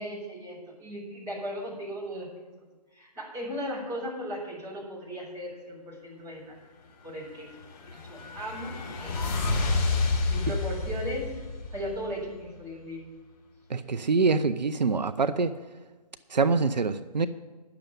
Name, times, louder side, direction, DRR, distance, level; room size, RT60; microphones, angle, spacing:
voice 1, 0.0-2.3 2.9-6.6 7.0-7.5 7.9-9.2 10.3-11.3 11.7-13.0, equal, 15° right, -7 dB, 5.0 m, -37 dB
sound 1, 7.5-12.4, left 3 dB, 30° left, 3.6 m, -30 dB
voice 2, 13.7-15.5 16.3-17.3, right 4 dB, 90° right, 12 dB, 0.6 m, -25 dB
10.5 x 6.9 x 9.3 m, 1.3 s
figure-of-eight pair, 145°, 21 cm